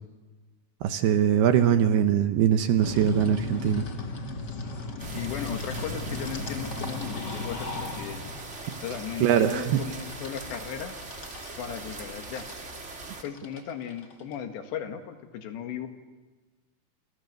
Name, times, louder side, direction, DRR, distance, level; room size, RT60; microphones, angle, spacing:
voice 1, 0.8-3.8 8.7-8.8 9.2-9.8, right 9 dB, 70° right, 8 dB, 2.7 m, -22 dB
sound 1, 2.8-14.3, left 2 dB, 40° left, 1.5 m, -37 dB
sound 2, 5.0-13.2, right 3 dB, 40° right, 0.9 m, -41 dB
voice 2, 5.1-8.2 8.8-11.0 11.6-12.5 13.2-15.9, left 8 dB, 70° left, 6 dB, 3.8 m, -36 dB
30.0 x 27.5 x 6.8 m, 1.2 s
omnidirectional pair, 5.3 m